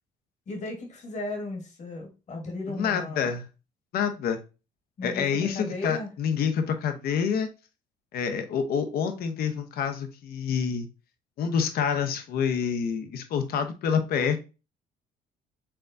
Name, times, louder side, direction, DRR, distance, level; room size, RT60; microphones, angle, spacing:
voice 1, 0.5-3.3 5.0-6.1, left 2 dB, 45° left, 2 dB, 1.4 m, -35 dB
voice 2, 2.7-3.4 3.9-4.4 5.0-7.5 8.1-10.9 11.4-14.4, left 7 dB, 65° left, 7 dB, 0.8 m, -27 dB
4.5 x 3.7 x 2.6 m, 0.30 s
cardioid pair, 110°, 17 cm